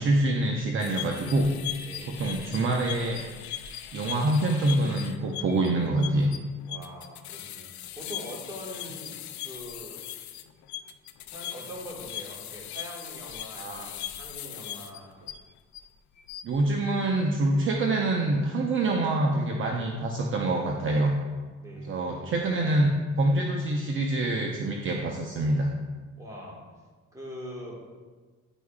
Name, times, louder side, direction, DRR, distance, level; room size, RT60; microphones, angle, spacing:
voice 1, 0.0-1.5 2.1-3.2 3.9-6.3 13.6-13.9 16.4-21.1 21.8-22.9 23.2-25.7, right 2 dB, 40° right, 1 dB, 0.7 m, -25 dB
sound 1, 0.8-15.8 16.2-16.6, left 11 dB, 65° left, 0.5 m, -39 dB
voice 2, 1.8-2.4 6.7-10.0 11.3-15.2 21.6-22.4 26.2-26.7 27.1-28.0, equal, 10° right, -3 dB, 1.7 m, -43 dB
9.8 x 4.7 x 2.4 m, 1.4 s
cardioid pair, 105°, 32 cm